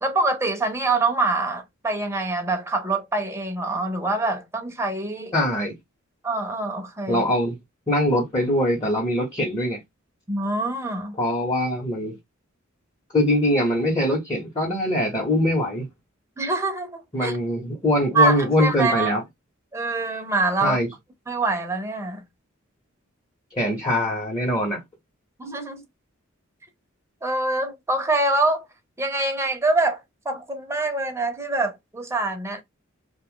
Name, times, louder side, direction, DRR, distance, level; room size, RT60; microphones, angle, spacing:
voice 1, 0.0-5.3 6.2-7.2 10.3-11.2 16.4-17.4 18.1-19.1 19.7-20.8 21.3-22.2 25.4-25.8 27.2-28.7 29.0-32.6, right 2 dB, 15° right, 0.7 m, -25 dB
voice 2, 5.3-5.8 7.1-7.6 7.9-9.8 11.2-12.2 13.1-15.9 17.1-19.2 20.6-20.9 23.5-24.8, left 1 dB, 20° left, 1.1 m, -22 dB
2.7 x 2.4 x 3.6 m
head